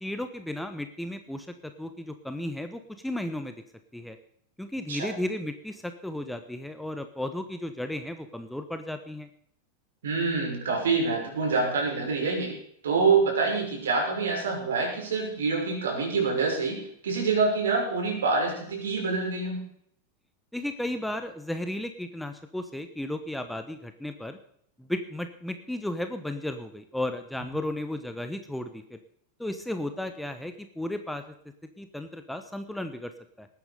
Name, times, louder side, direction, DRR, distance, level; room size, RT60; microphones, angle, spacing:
voice 1, 0.0-3.5 3.9-4.2 4.6-9.3 20.5-24.4 24.8-29.0 29.4-31.3 31.8-33.1 33.4-33.5, left 1 dB, 5° left, 8 dB, 1.0 m, -34 dB
voice 2, 10.0-12.5 12.8-19.6, right 4 dB, 65° right, 0 dB, 5.9 m, -26 dB
19.5 x 9.5 x 5.1 m, 0.67 s
figure-of-eight pair, 90°, 0 cm